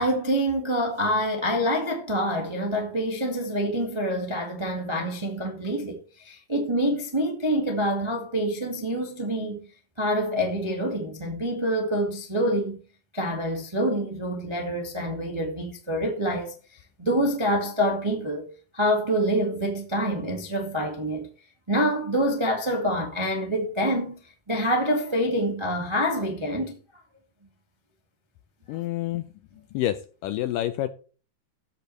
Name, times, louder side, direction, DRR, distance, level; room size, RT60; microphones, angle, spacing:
voice 1, 0.0-9.6 10.0-12.8 13.1-16.5 17.0-18.5 18.7-21.3 21.7-24.2 24.5-26.8, equal, 30° right, 0.5 m, -26 dB
voice 2, 28.7-29.3 29.7-30.9, left 13 dB, 80° left, 2.0 m, -28 dB
15.0 x 8.1 x 3.3 m
omnidirectional pair, 4.4 m